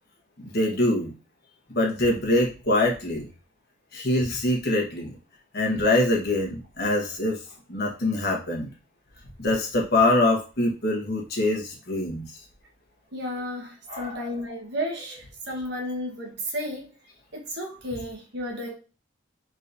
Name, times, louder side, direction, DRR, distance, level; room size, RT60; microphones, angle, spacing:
voice 1, 0.4-1.1 1.7-3.3 3.9-5.1 5.5-7.4 7.7-8.7 9.4-12.3 13.9-14.4, left 1 dB, 50° left, 1.3 m, -24 dB
voice 2, 13.1-16.9 17.3-18.7, equal, 55° right, 1.2 m, -33 dB
4.1 x 3.8 x 2.6 m
head